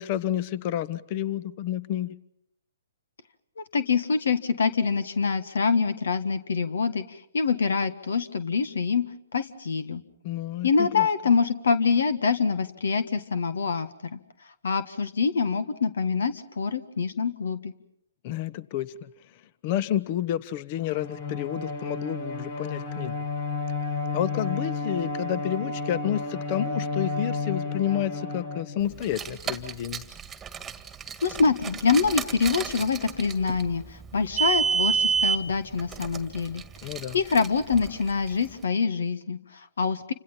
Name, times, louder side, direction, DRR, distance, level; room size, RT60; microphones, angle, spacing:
voice 1, 0.0-2.2 10.2-11.1 18.2-19.1 19.6-23.1 24.1-30.0 36.8-37.2, left 11 dB, 40° left, 18 dB, 1.1 m, -30 dB
voice 2, 3.6-10.0 10.6-14.2 14.6-17.7 31.2-36.6 37.1-40.1, left 5 dB, 75° left, 13 dB, 1.6 m, -25 dB
Bowed string instrument, 20.8-29.2, left 3 dB, 60° left, 3.9 m, -32 dB
Car, 29.0-38.5, right 6 dB, 15° right, 1.7 m, -30 dB
29.0 x 26.5 x 5.7 m, 0.71 s
hypercardioid pair, 130°, 0 cm